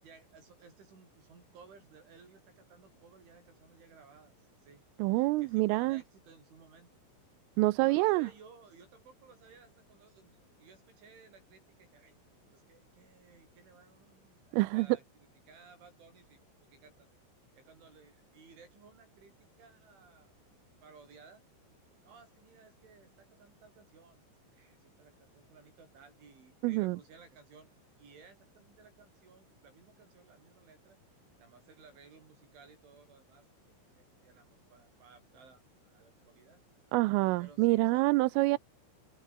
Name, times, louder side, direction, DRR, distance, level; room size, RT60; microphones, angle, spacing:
voice 1, 0.0-4.8 5.4-6.9 7.7-12.1 12.5-17.1 17.5-20.4 20.8-21.4 22.0-24.2 24.5-27.7 28.0-31.0 31.4-33.5 33.9-36.6 37.4-38.1 38.5-38.6, right 5 dB, 65° right, 9.8 m, -58 dB
voice 2, 5.0-6.0 7.6-8.3 14.5-14.9 26.6-27.0 36.9-38.6, right 21 dB, 80° right, 3.3 m, -27 dB
open air
omnidirectional pair, 5.9 m